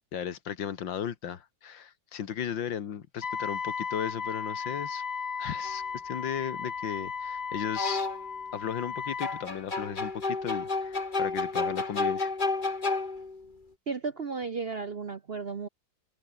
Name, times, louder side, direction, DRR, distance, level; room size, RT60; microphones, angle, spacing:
voice 1, 0.1-5.0 5.4-8.1 8.5-12.3, left 8 dB, 80° left, 2.2 m, -36 dB
Wind instrument woodwind instrument, 3.2-9.5, left 6 dB, 60° left, 2.6 m, -35 dB
sound 1, 5.6-5.8 7.7-8.3 9.2-13.5, left 3 dB, 25° left, 2.0 m, -31 dB
voice 2, 13.9-15.7, right 4 dB, 45° right, 0.9 m, -34 dB
open air
omnidirectional pair, 2.1 m